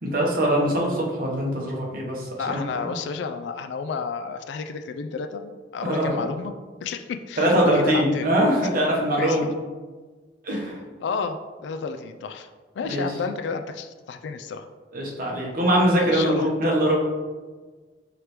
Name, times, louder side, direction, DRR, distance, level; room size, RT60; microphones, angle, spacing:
voice 1, 0.0-2.9 5.8-6.2 7.4-9.5 10.4-10.8 12.8-13.1 14.9-17.0, equal, 50° right, -3 dB, 1.0 m, -22 dB
voice 2, 2.4-6.5 6.8-8.3 9.2-9.5 10.5-10.6 11.0-12.5 12.8-14.7 16.0-16.5, left 5 dB, 70° left, 8 dB, 0.3 m, -31 dB
4.9 x 3.2 x 3.0 m, 1.4 s
head